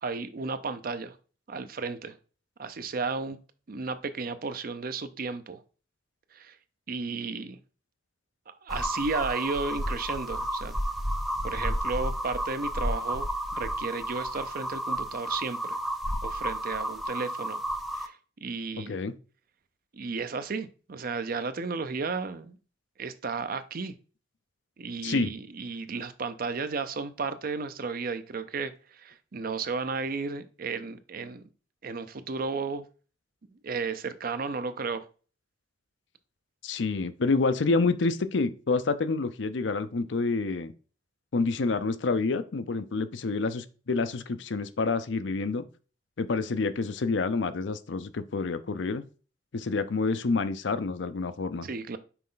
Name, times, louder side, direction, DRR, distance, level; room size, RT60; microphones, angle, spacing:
voice 1, 0.0-1.2 1.5-2.1 2.6-3.4 3.7-5.6 6.3-6.5 6.9-7.6 8.5-10.8 11.4-13.3 13.6-15.8 16.2-17.6 17.9-18.1 18.4-18.9 19.9-22.6 23.0-23.9 24.8-31.4 31.8-32.9 33.6-35.1 51.6-52.0, right 4 dB, 50° right, 11 dB, 0.6 m, -33 dB
sound 1, 8.7-18.1, equal, ahead, 0.5 m, -32 dB
voice 2, 36.6-40.7 41.3-45.6 46.2-49.0 49.5-51.7, left 3 dB, 75° left, 12 dB, 0.6 m, -28 dB
5.9 x 4.3 x 3.8 m, 0.37 s
head